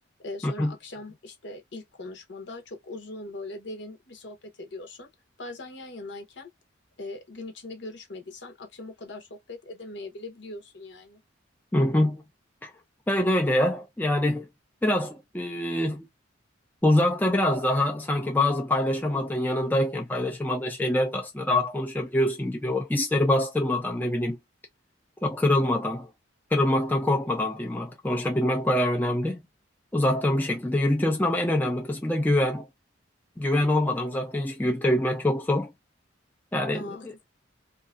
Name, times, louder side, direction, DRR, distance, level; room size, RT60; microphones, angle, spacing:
voice 1, 0.2-5.1 5.4-6.5 7.0-11.2 36.7-37.2, left 2 dB, 60° left, 0.8 m, -40 dB
voice 2, 11.7-12.2 12.6-12.7 13.1-14.5 14.8-16.1 16.8-24.4 25.2-26.1 26.5-29.4 29.9-32.7 33.4-35.7 36.5-37.1, left 1 dB, 10° left, 0.4 m, -25 dB
2.7 x 2.4 x 2.4 m
head